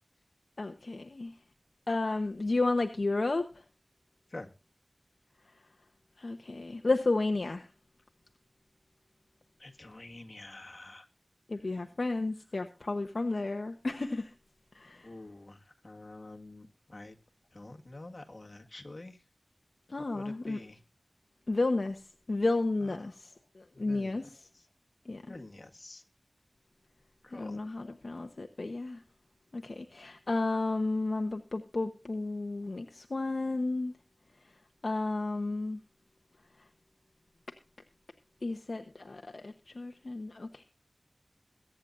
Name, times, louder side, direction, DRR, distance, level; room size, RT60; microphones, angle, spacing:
voice 1, 0.6-1.3 1.9-3.5 6.2-7.7 11.5-14.3 14.7-15.1 19.9-20.6 21.5-22.0 22.3-23.3 23.6-24.3 25.1-25.3 27.3-29.0 29.5-33.9 34.8-35.8 38.4-40.6, left 2 dB, 70° left, 1.0 m, -32 dB
voice 2, 9.6-11.1 15.0-15.6 15.8-17.2 17.5-19.2 20.1-20.8 23.8-24.2 25.3-26.0 27.3-27.6, left 2 dB, 50° left, 1.8 m, -47 dB
22.5 x 8.9 x 2.6 m
wide cardioid pair, 60°, 0 cm